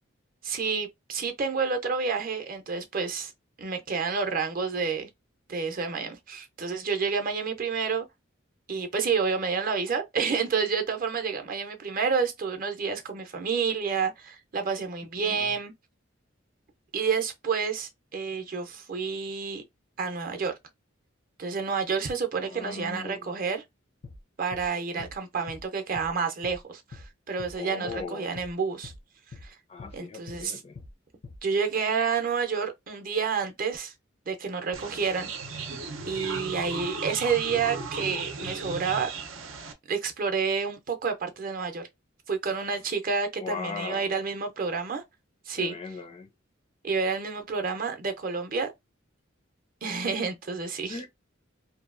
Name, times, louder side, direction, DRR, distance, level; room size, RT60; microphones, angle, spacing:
voice 1, 0.4-3.3 3.6-5.1 5.5-8.1 8.7-15.7 16.9-19.6 20.0-20.5 21.4-23.6 24.4-28.9 29.4-29.5 29.9-30.6 31.4-33.9 34.3-35.3 36.1-39.1 39.9-41.8 42.3-45.0 45.5-45.8 46.8-48.7 49.8-51.0, right 5 dB, 45° right, 0.6 m, -29 dB
voice 2, 15.2-15.5 22.4-23.3 24.7-25.1 27.6-28.4 29.7-30.8 43.4-44.1 45.5-46.3 50.9-51.1, left 5 dB, 30° left, 0.4 m, -39 dB
sound 1, 24.0-24.2 24.5-24.7 25.0-25.2 25.5-25.6 25.9-26.1 26.4-26.6 26.9-27.1 27.4-27.6 27.9-28.0 28.4-28.5 28.8-29.0 29.3-29.5 29.8-30.0 30.3-30.4 30.8-30.9 31.2-31.4, left 3 dB, 80° left, 0.7 m, -44 dB
sound 2, 34.7-39.7, right 4 dB, 90° right, 0.6 m, -36 dB
2.7 x 2.3 x 2.4 m
head